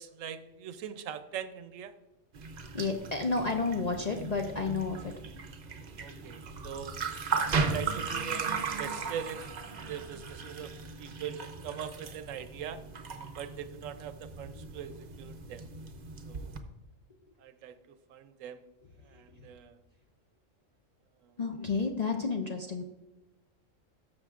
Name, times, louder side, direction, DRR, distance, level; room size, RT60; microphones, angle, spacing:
voice 1, 0.0-1.9 6.0-6.9 7.5-9.6 9.9-10.7 11.0-12.8 13.4-15.7 16.3-16.5 17.4-18.6 19.1-19.8 21.2-21.3, right 8 dB, 80° right, 11 dB, 1.0 m, -41 dB
sound 1, 2.3-16.6, right 4 dB, 45° right, 0.6 m, -37 dB
voice 2, 2.7-5.1 21.4-22.8, left 4 dB, 50° left, 3 dB, 0.5 m, -31 dB
12.5 x 6.8 x 2.4 m, 1.0 s
omnidirectional pair, 1.3 m